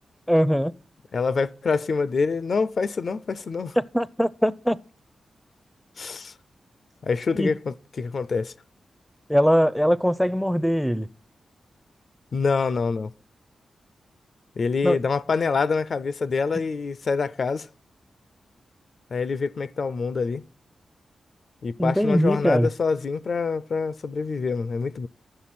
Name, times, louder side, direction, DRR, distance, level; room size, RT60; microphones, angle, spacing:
voice 1, 0.3-0.7 3.9-4.8 7.4-7.5 9.3-11.1 14.8-15.0 21.8-22.7, equal, ahead, 0.4 m, -21 dB
voice 2, 1.1-3.8 6.0-6.3 7.0-8.5 12.3-13.1 14.6-17.7 19.1-20.4 21.6-25.1, left 4 dB, 60° left, 0.4 m, -26 dB
11.0 x 7.6 x 4.1 m
cardioid pair, 70°, 0 cm